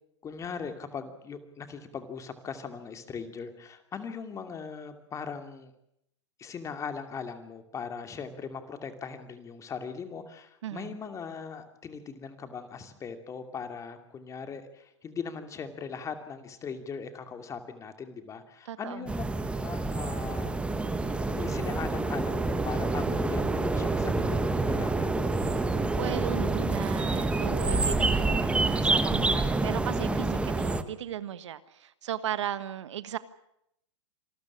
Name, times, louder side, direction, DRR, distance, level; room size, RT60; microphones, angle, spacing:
voice 1, 0.2-5.7 6.4-19.2 19.6-25.2, left 6 dB, 20° left, 2.7 m, -40 dB
voice 2, 10.6-10.9 18.6-19.1 25.9-33.2, right 10 dB, 75° right, 1.5 m, -36 dB
sound 1, 19.1-30.8, right 3 dB, 5° right, 1.2 m, -27 dB
26.5 x 13.5 x 9.9 m
hypercardioid pair, 130°, 15 cm